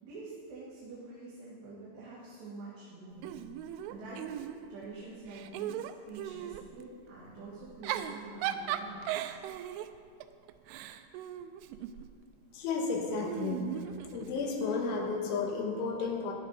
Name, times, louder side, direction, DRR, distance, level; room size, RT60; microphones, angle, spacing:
voice 1, 0.0-3.3 3.6-9.3, right 3 dB, 65° right, -8 dB, 4.1 m, -46 dB
Giggle / Chuckle chortle, 3.2-4.9 5.3-6.7 7.6-12.1 13.2-14.6, right 11 dB, 85° right, 3.1 m, -38 dB
voice 2, 12.5-13.8 14.1-16.3, left 4 dB, 80° left, 0 dB, 3.8 m, -32 dB
17.0 x 12.0 x 4.1 m, 2.2 s
omnidirectional pair, 5.6 m